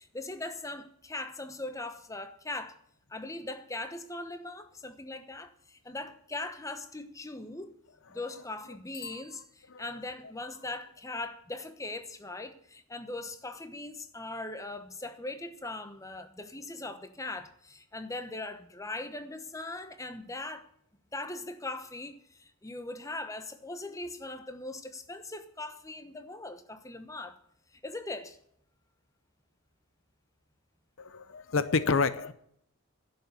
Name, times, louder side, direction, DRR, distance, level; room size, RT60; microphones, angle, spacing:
voice 1, 0.0-2.8 3.1-7.8 8.1-20.7 21.1-27.4 27.8-28.4, left 2 dB, 15° left, 1.0 m, -40 dB
Bicycle bell, 8.9-10.2, left 5 dB, 85° left, 1.7 m, -50 dB
voice 2, 31.0-32.3, left 4 dB, 60° left, 0.6 m, -28 dB
11.0 x 7.0 x 9.4 m
head